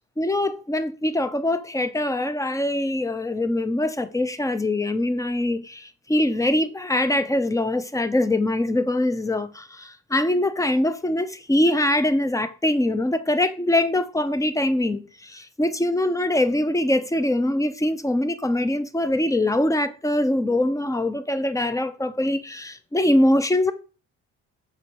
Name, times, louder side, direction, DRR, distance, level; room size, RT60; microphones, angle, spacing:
voice 1, 0.2-23.7, left 1 dB, 10° left, 0.8 m, -23 dB
6.9 x 5.6 x 4.8 m
cardioid pair, 90°, 30 cm